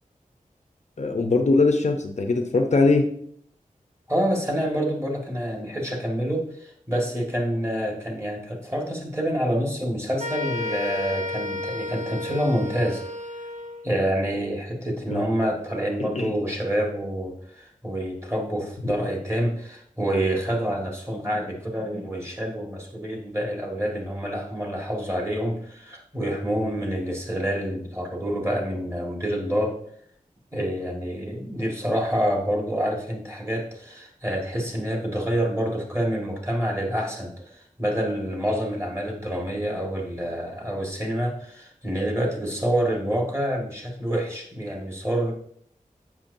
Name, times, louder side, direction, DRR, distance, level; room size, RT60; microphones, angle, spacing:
voice 1, 1.0-3.1 15.1-15.3 16.0-16.3, left 3 dB, 55° left, 4 dB, 0.7 m, -21 dB
voice 2, 4.1-13.0 13.8-29.8 30.5-45.3, equal, 20° right, -1 dB, 1.7 m, -27 dB
sound 1, 10.2-13.9, left 2 dB, 60° right, 0.8 m, -32 dB
7.3 x 6.0 x 2.6 m, 0.64 s
wide cardioid pair, 85°, 14 cm